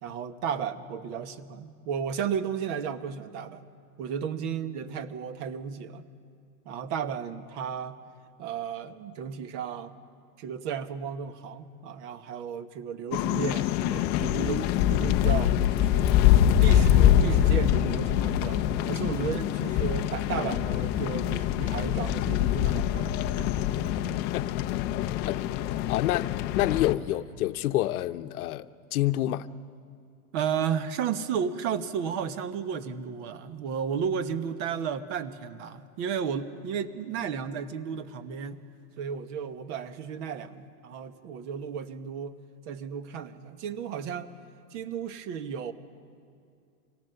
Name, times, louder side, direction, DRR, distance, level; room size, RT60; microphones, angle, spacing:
voice 1, 0.0-3.6 4.0-6.0 6.6-8.0 8.4-9.9 10.4-16.2 16.6-23.5 30.3-38.6 39.0-42.4 42.7-44.3 44.7-45.7, right 7 dB, 50° right, 10 dB, 1.4 m, -33 dB
sound 1, 13.1-26.9, left 11 dB, 25° left, 0.4 m, -24 dB
voice 2, 24.3-24.8 25.2-25.4 25.9-26.3 26.5-29.5, left 14 dB, 65° left, 12 dB, 0.8 m, -28 dB
25.0 x 17.5 x 6.9 m, 2.4 s
hypercardioid pair, 135°, 47 cm